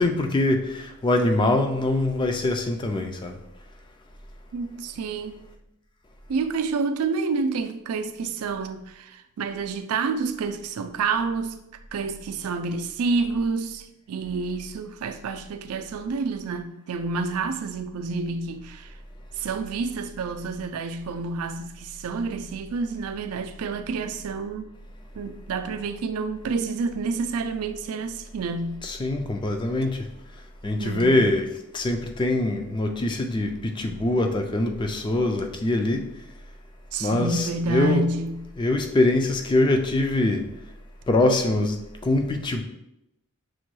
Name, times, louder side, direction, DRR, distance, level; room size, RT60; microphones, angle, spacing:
voice 1, 0.0-3.4 28.8-30.1 30.6-31.5 31.7-36.1 37.0-38.1 38.6-40.4 41.1-41.8 42.0-42.6, left 2 dB, 20° left, 0.3 m, -23 dB
voice 2, 4.5-5.4 6.3-11.6 11.9-18.9 19.4-24.7 25.1-28.8 30.8-31.3 36.9-38.5, right 4 dB, 75° right, 0.4 m, -29 dB
6.1 x 2.2 x 3.1 m
head